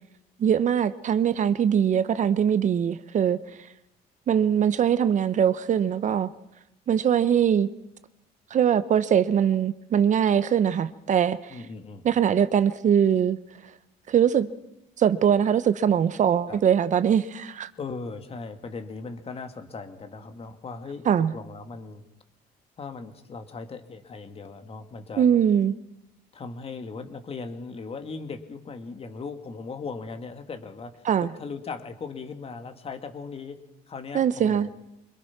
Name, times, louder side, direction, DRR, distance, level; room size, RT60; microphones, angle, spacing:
voice 1, 0.4-3.4 4.3-6.3 6.9-7.7 8.5-11.6 12.0-13.4 14.1-14.5 15.0-17.7 21.1-21.3 25.2-25.7 31.0-31.3 34.1-34.7, right 8 dB, 45° right, 0.9 m, -22 dB
voice 2, 11.5-12.0 16.5-16.6 17.8-22.0 22.8-25.4 26.3-34.7, left 4 dB, 35° left, 2.3 m, -38 dB
25.5 x 21.5 x 6.0 m
cardioid pair, 110°, 17 cm